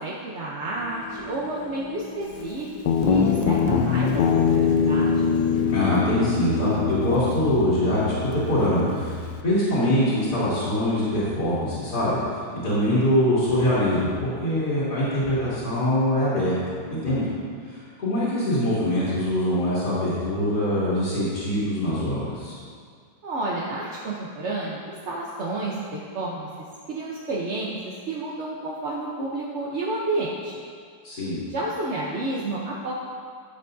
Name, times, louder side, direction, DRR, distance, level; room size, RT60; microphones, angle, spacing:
voice 1, 0.0-2.7 3.1-5.3 17.1-17.4 23.2-24.8 25.1-26.5 26.9-27.8 28.1-30.5 31.5-32.9, right 2 dB, 50° right, -5 dB, 0.9 m, -30 dB
sound 1, 0.7-7.7, left 4 dB, 10° left, 2.2 m, -39 dB
Guitar, 2.9-9.4, left 5 dB, 75° left, 1.3 m, -23 dB
voice 2, 5.7-9.2 9.4-12.2 12.5-16.6 16.9-17.2 17.7-22.6 31.0-31.4, left 1 dB, 50° left, -13 dB, 3.1 m, -23 dB
13.5 x 7.9 x 2.7 m, 2.1 s
omnidirectional pair, 2.1 m